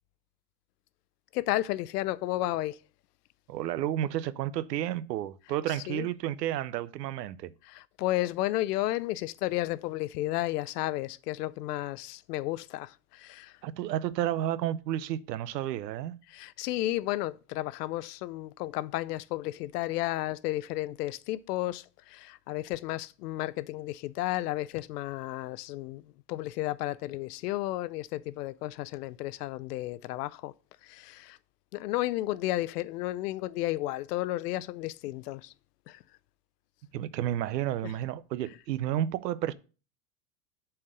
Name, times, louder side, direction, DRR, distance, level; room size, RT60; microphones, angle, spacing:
voice 1, 1.3-2.8 5.7-6.1 7.6-13.6 16.3-26.0 26.3-30.5 30.8-31.4 31.7-35.5 35.9-36.0 37.8-37.9, left 16 dB, 75° left, 0.6 m, -33 dB
voice 2, 3.5-7.5 13.6-16.1 36.9-39.5, right 12 dB, 90° right, 0.7 m, -31 dB
7.2 x 4.6 x 6.6 m
supercardioid pair, 135°, 48 cm